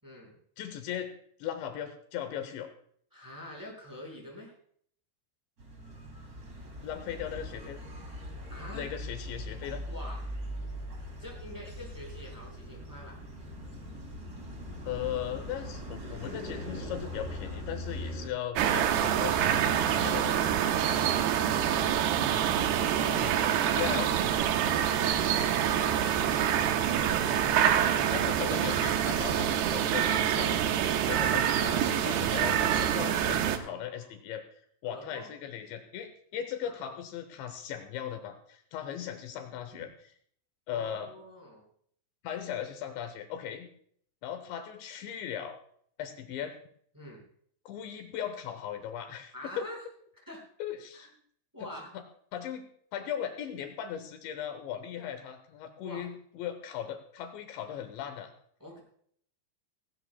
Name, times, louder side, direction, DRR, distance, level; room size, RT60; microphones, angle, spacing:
voice 1, 0.0-0.4 3.1-4.5 8.5-8.9 9.9-10.2 11.2-13.2 20.0-22.1 24.6-27.8 28.4-28.6 33.4-34.1 34.8-35.3 36.6-36.8 39.0-39.1 39.7-39.8 40.7-41.6 46.9-47.2 49.3-49.8 50.3-50.4 50.9-51.1 51.5-51.9 55.8-56.1 58.6-58.8, left 1 dB, 5° right, -2 dB, 4.5 m, -46 dB
voice 2, 0.6-1.1 1.4-2.7 6.8-7.8 8.7-9.8 14.9-20.3 23.0-23.4 23.7-24.2 28.1-34.4 34.8-39.9 40.7-41.1 42.2-43.7 44.2-45.6 46.0-46.6 47.7-49.7 50.6-51.1 51.6-51.7 51.9-52.0 52.3-58.3, left 9 dB, 75° left, 7 dB, 3.1 m, -38 dB
sound 1, 5.6-18.3, equal, 30° right, 1.8 m, -41 dB
sound 2, 18.5-33.6, right 9 dB, 75° right, 2.5 m, -26 dB
17.5 x 17.0 x 2.2 m, 0.62 s
omnidirectional pair, 5.4 m